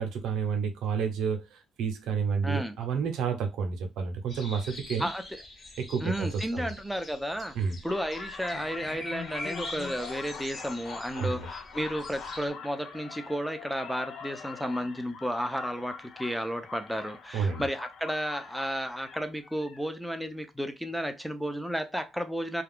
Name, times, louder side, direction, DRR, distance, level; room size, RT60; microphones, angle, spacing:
voice 1, 0.0-5.1 5.8-6.7 7.5-7.8 11.2-11.5 17.3-17.6, right 6 dB, 75° right, 0.7 m, -30 dB
voice 2, 2.4-2.8 5.0-5.2 6.0-7.5 7.8-22.6, equal, ahead, 0.6 m, -33 dB
sound 1, 4.3-12.5, left 2 dB, 40° left, 1.1 m, -43 dB
sound 2, 7.9-19.9, left 6 dB, 70° left, 0.6 m, -43 dB
2.4 x 2.3 x 3.5 m
supercardioid pair, 75°, 0 cm